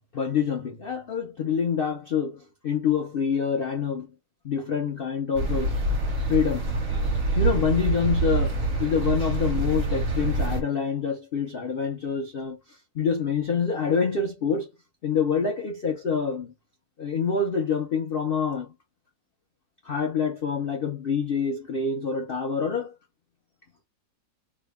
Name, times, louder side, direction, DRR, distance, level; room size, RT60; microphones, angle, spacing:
voice 1, 0.1-4.1 4.4-5.7 6.3-6.7 7.4-14.7 15.0-16.5 17.0-18.7 19.8-22.9, left 6 dB, 80° left, 0.5 m, -26 dB
sound 1, 5.4-10.6, right 2 dB, 50° right, 1.4 m, -26 dB
3.2 x 2.2 x 3.4 m
omnidirectional pair, 1.9 m